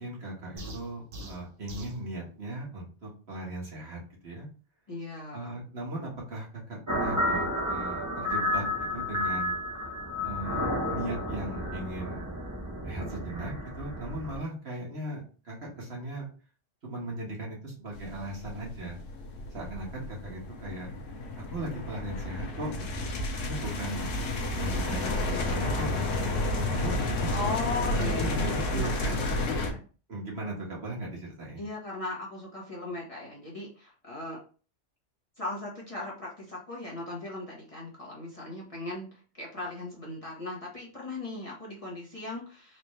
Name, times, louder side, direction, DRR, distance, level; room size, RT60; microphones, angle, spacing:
voice 1, 0.0-4.5 5.3-8.6 8.9-9.6 10.2-12.2 12.8-16.3 16.8-19.0 19.5-20.9 21.5-23.1 23.4-24.1 24.5-25.9 26.5-27.6 27.9-29.2 30.1-31.6, right 1 dB, 60° right, -3 dB, 1.6 m, -38 dB
sound 1, 0.6-2.0, equal, 80° right, 1.2 m, -42 dB
voice 2, 4.9-5.6 27.3-29.8 31.6-34.4 35.4-42.8, left 2 dB, 30° left, -4 dB, 1.2 m, -38 dB
sound 2, 6.9-14.4, left 1 dB, 15° right, 0.8 m, -31 dB
sound 3, 17.9-29.7, left 2 dB, 80° left, 1.1 m, -31 dB
4.2 x 2.5 x 3.1 m, 0.37 s
omnidirectional pair, 1.3 m